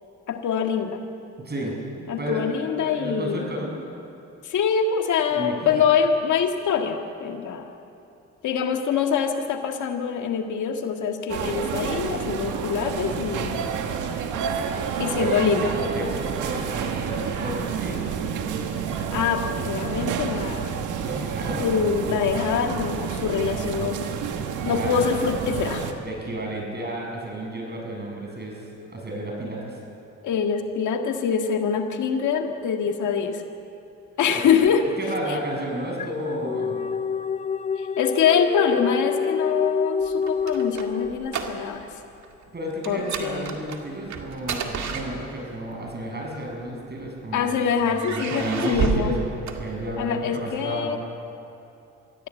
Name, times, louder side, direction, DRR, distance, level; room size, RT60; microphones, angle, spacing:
voice 1, 0.3-1.0 2.1-3.5 4.4-7.7 8.4-13.6 15.0-15.7 19.1-20.7 21.6-24.0 24.7-25.9 30.2-33.4 34.2-34.8 35.3-35.4 37.8-41.9 42.9-43.6 47.3-49.2 50.0-51.0, left 7 dB, 75° left, 4 dB, 1.9 m, -24 dB
voice 2, 1.4-2.4 2.8-3.7 5.3-5.5 15.2-18.1 21.0-21.7 24.7-25.2 26.0-29.8 34.3-34.5 35.0-36.8 42.5-50.9, right 1 dB, 35° right, 0 dB, 6.9 m, -32 dB
sound 1, 11.3-25.9, right 7 dB, 90° right, 1.8 m, -29 dB
sound 2, 35.3-41.7, left 5 dB, 25° left, 0.5 m, -27 dB
sound 3, 40.0-41.9 42.2-42.4 42.8-45.6 46.5-47.4 47.9-50.2, right 6 dB, 65° right, 2.2 m, -31 dB
24.5 x 16.0 x 8.3 m, 2.8 s
cardioid pair, 90°, 30 cm